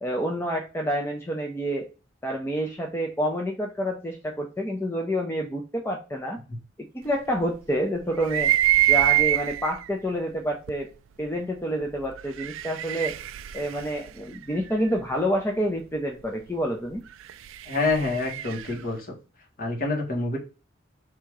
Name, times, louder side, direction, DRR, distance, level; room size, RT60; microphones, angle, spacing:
voice 1, 0.0-1.9 2.2-6.4 6.9-8.5 8.9-10.9 11.2-13.1 13.5-17.0, equal, 10° left, 1 dB, 0.5 m, -28 dB
sound 1, 8.2-9.9 10.7-10.8 12.1-15.0 17.1-18.8, right 14 dB, 75° right, 0.3 m, -25 dB
voice 2, 17.7-19.0 19.6-20.4, left 3 dB, 50° left, -1 dB, 1.5 m, -26 dB
3.5 x 2.9 x 4.6 m, 0.32 s
head